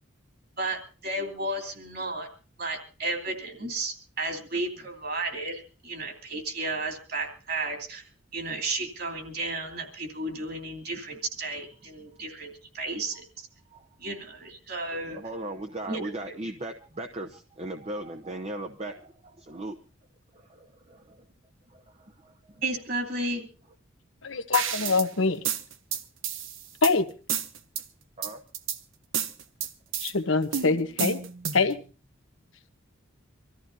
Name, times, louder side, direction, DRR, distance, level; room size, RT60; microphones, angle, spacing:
voice 1, 0.6-2.3 2.6-8.0 8.3-13.5 14.0-15.2 15.9-16.4 22.6-23.4, right 2 dB, 50° right, 2.8 m, -33 dB
voice 2, 13.7-14.1 15.1-19.8 20.3-21.3 21.7-22.6 28.2-28.4, right 1 dB, 30° right, 0.8 m, -38 dB
voice 3, 24.2-25.4 26.8-27.0 30.0-31.2 31.5-31.8, left 4 dB, 80° left, 1.0 m, -24 dB
sound 1, 24.5-25.1 25.5-26.9 27.3-27.8 28.2-28.8 29.1-30.1 30.5-31.7, right 8 dB, 75° right, 1.0 m, -31 dB
25.5 x 14.0 x 2.7 m
head